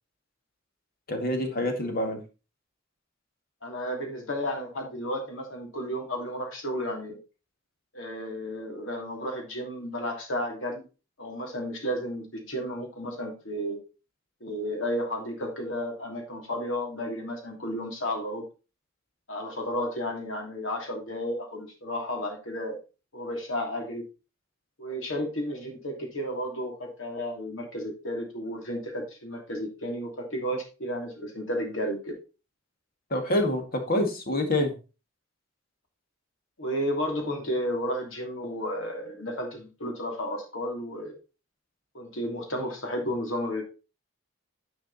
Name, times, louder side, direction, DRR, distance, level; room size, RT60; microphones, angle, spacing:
voice 1, 1.1-2.2 33.1-34.7, left 1 dB, 50° left, 4 dB, 2.1 m, -26 dB
voice 2, 3.6-7.2 7.9-10.8 11.2-13.8 14.4-18.4 19.3-22.8 23.1-24.0 24.8-32.2 36.6-41.1 41.9-43.6, equal, 70° left, 2 dB, 3.0 m, -32 dB
10.0 x 5.1 x 4.1 m, 0.32 s
head